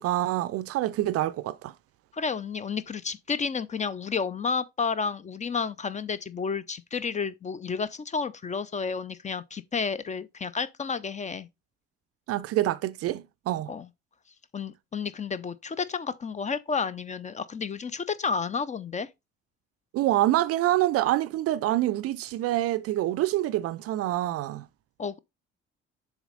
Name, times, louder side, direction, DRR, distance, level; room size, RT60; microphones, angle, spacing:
voice 1, 0.0-1.7 12.3-13.7 19.9-24.7, right 14 dB, 45° right, 0.4 m, -26 dB
voice 2, 2.1-11.5 13.7-13.9 14.5-19.1 25.0-25.2, left 5 dB, 20° left, 0.5 m, -31 dB
7.0 x 4.0 x 3.8 m
figure-of-eight pair, 45°, 34 cm